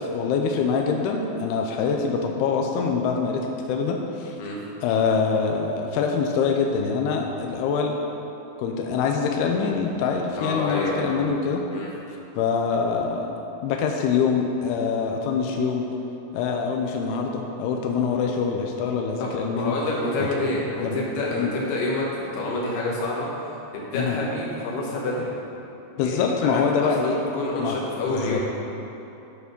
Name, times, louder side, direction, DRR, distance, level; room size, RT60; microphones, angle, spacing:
voice 1, 0.0-4.4 4.8-8.0 8.6-11.6 12.4-13.3 13.6-15.9 16.3-19.7 20.2-20.3 20.8-21.0 21.3-21.5 23.9-24.2 26.0-27.2 27.6-27.8 28.1-28.4, left 5 dB, 85° left, 2 dB, 2.4 m, -24 dB
voice 2, 10.4-11.1 11.7-11.9 19.2-23.3 23.7-25.3 26.0-28.4, left 2 dB, 70° left, -4 dB, 3.3 m, -28 dB
11.5 x 4.3 x 5.2 m, 3.0 s
omnidirectional pair, 5.2 m